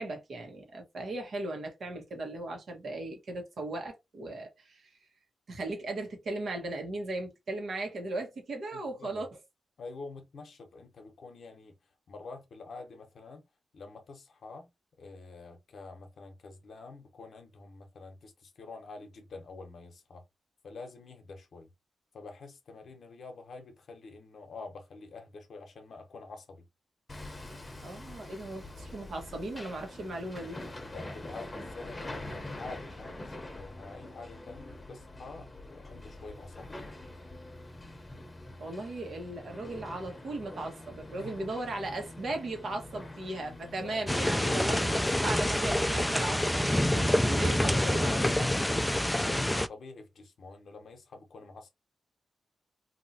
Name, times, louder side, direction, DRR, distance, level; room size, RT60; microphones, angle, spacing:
voice 1, 0.0-5.0 5.5-9.3 27.8-30.6 38.6-48.2, right 2 dB, 70° right, 1.2 m, -37 dB
voice 2, 8.7-9.3 9.8-11.8 12.1-13.5 13.7-14.7 15.0-20.3 20.6-21.7 22.1-26.7 30.8-36.9 41.2-41.3 43.5-44.0 47.6-51.7, left 3 dB, 70° left, 0.8 m, -47 dB
Hammer, 27.1-45.7, left 1 dB, 30° left, 0.8 m, -45 dB
sound 1, 44.1-49.7, left 1 dB, 10° left, 0.3 m, -27 dB
3.0 x 2.7 x 2.7 m
cardioid pair, 55°, 0 cm